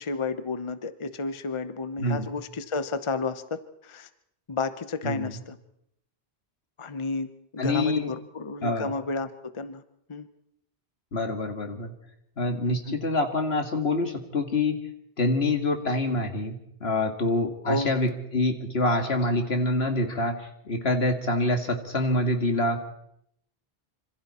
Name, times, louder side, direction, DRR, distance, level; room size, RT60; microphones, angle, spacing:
voice 1, 0.0-4.1 4.5-5.6 6.8-9.8 10.1-10.3 12.7-13.0 17.6-17.9, left 3 dB, 30° left, 10 dB, 0.9 m, -32 dB
voice 2, 2.0-2.3 5.0-5.4 7.6-8.1 8.6-8.9 11.1-11.9 12.4-14.8 15.2-22.8, left 2 dB, 70° left, 5 dB, 2.3 m, -26 dB
26.0 x 26.0 x 4.3 m, 0.75 s
omnidirectional pair, 1.1 m